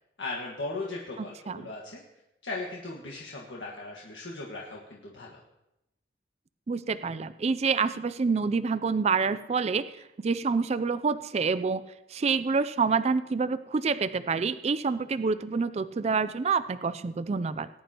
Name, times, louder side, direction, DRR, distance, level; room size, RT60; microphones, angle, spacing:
voice 1, 0.2-2.0 2.4-5.4, left 3 dB, 85° left, -3 dB, 1.6 m, -37 dB
voice 2, 6.7-9.9 10.2-11.8 12.1-17.7, right 5 dB, 35° right, 12 dB, 0.4 m, -27 dB
19.5 x 10.5 x 2.9 m, 0.90 s
head